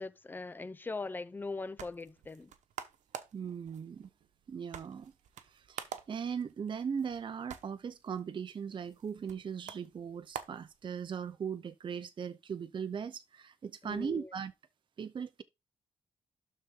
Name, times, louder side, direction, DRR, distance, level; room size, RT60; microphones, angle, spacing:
voice 1, 0.0-2.5 13.8-14.3, left 3 dB, 15° left, 0.6 m, -40 dB
sound 1, 1.4-11.3, right 8 dB, 90° right, 1.0 m, -49 dB
voice 2, 3.3-4.1 4.5-5.1 5.4-14.5 15.0-15.4, right 7 dB, 40° right, 0.6 m, -39 dB
12.0 x 4.1 x 3.7 m
wide cardioid pair, 125°, 12 cm